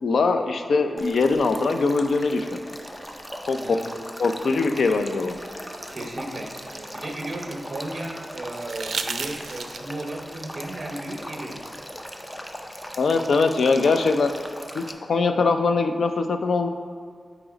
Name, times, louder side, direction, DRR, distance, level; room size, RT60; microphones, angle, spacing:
voice 1, 0.0-2.6 3.5-3.8 4.2-5.3 13.0-14.3 14.7-16.7, left 4 dB, 85° left, 7 dB, 0.4 m, -22 dB
Male speech man speaking / Stream / Trickle dribble, 1.0-14.9, equal, 5° left, 0.5 m, -39 dB
voice 2, 3.6-3.9 5.9-6.6 6.9-11.7, right 1 dB, 40° right, 2 dB, 0.8 m, -35 dB
sound 1, 5.4-7.6 8.5-10.1 11.7-11.8, right 5 dB, 85° right, 0.4 m, -35 dB
8.8 x 3.0 x 4.9 m, 2.1 s
wide cardioid pair, 145°, 0 cm